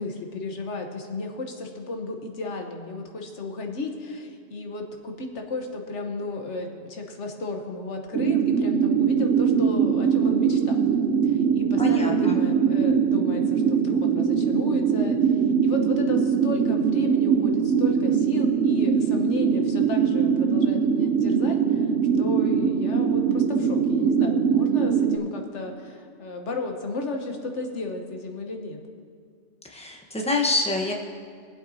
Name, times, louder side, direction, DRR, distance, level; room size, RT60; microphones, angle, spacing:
voice 1, 0.0-10.9 11.2-21.9 22.2-28.8, left 2 dB, 80° left, 3 dB, 1.4 m, -34 dB
sound 1, 8.1-25.2, right 7 dB, 85° right, 1.0 m, -22 dB
voice 2, 11.8-12.4 29.6-30.9, left 2 dB, 5° left, 0 dB, 1.0 m, -26 dB
21.5 x 7.8 x 2.8 m, 2.2 s
omnidirectional pair, 1.2 m